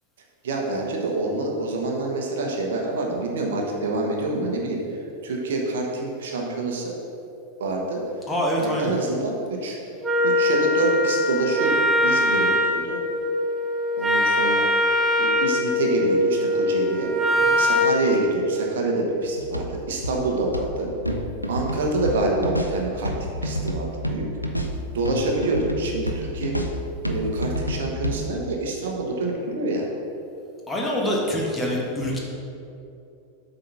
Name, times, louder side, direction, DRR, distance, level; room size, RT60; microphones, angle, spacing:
voice 1, 0.4-7.0 7.6-8.0 8.6-9.8 10.2-13.0 14.0-14.6 15.2-17.1 17.6-20.9 21.5-24.3 24.9-26.5 27.0-29.9, right 2 dB, 60° right, 0 dB, 1.1 m, -26 dB
voice 2, 8.3-8.9 17.5-17.6 30.7-32.2, equal, 10° left, -3 dB, 1.3 m, -25 dB
Wind instrument woodwind instrument, 10.0-18.0, left 1 dB, 10° right, 0.9 m, -22 dB
sound 1, 19.2-28.2, equal, 90° left, 0.5 m, -29 dB
7.7 x 4.0 x 5.6 m, 2.7 s
figure-of-eight pair, 90°, 0 cm